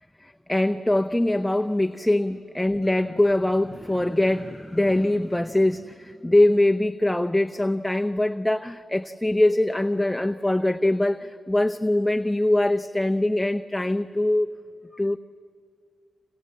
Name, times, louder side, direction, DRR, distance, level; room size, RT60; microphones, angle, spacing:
voice 1, 0.2-14.5 14.9-15.2, left 1 dB, 10° left, 7 dB, 0.8 m, -23 dB
29.0 x 26.0 x 7.6 m, 2.2 s
supercardioid pair, 50°, 0 cm